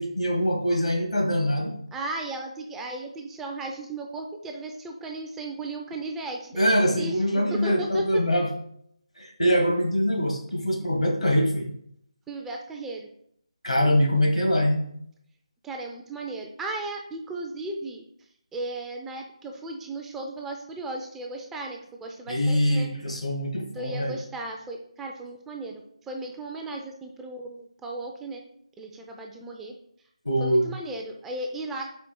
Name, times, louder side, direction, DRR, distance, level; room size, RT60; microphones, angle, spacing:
voice 1, 0.0-1.7 6.5-8.5 9.2-11.7 13.6-14.9 22.3-24.2 30.2-30.7, equal, 85° left, 1 dB, 1.3 m, -23 dB
voice 2, 1.9-8.2 12.3-13.1 15.6-18.0 18.5-22.9 23.7-28.4 28.8-29.7 30.4-31.9, right 2 dB, 5° right, 1 dB, 0.3 m, -36 dB
4.5 x 2.8 x 4.3 m, 0.68 s
figure-of-eight pair, 155°, 3 cm